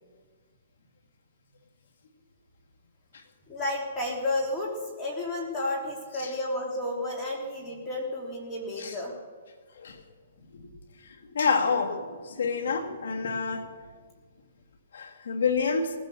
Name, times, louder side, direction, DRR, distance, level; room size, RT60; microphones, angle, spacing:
voice 1, 3.5-4.7 5.0-9.1, left 1 dB, 15° left, -2 dB, 3.5 m, -31 dB
voice 2, 11.0-13.7 14.9-15.9, left 5 dB, 75° left, 5 dB, 2.4 m, -28 dB
19.0 x 10.5 x 7.1 m, 1.5 s
hypercardioid pair, 145°, 0 cm